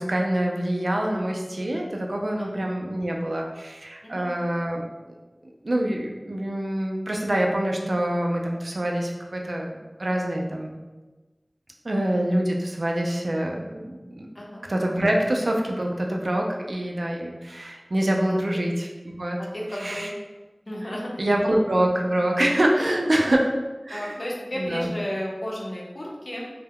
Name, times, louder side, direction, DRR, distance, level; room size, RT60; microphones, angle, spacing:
voice 1, 0.0-4.8 5.6-9.7 10.0-10.7 11.8-14.3 14.7-19.4 19.7-20.1 21.2-23.5 23.8-24.2 24.6-24.9, right 1 dB, 80° right, 0 dB, 0.3 m, -25 dB
voice 2, 19.4-20.1 20.7-21.1 23.0-23.4 23.9-26.5, equal, 60° left, -4 dB, 0.6 m, -33 dB
2.2 x 2.1 x 3.5 m, 1.2 s
wide cardioid pair, 45°, 0 cm